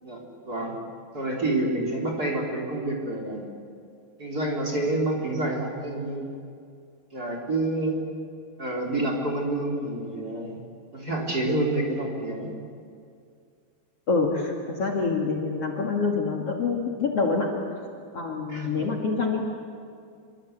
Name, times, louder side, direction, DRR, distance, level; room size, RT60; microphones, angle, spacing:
voice 1, 0.0-0.8 1.1-3.4 4.2-6.3 7.1-8.0 8.6-10.6 10.9-12.5 18.5-18.9, right 2 dB, 25° right, 1 dB, 3.9 m, -28 dB
voice 2, 14.1-17.5 18.1-19.4, left 4 dB, 45° left, -1 dB, 2.9 m, -26 dB
27.0 x 24.5 x 8.2 m, 2.3 s
omnidirectional pair, 4.3 m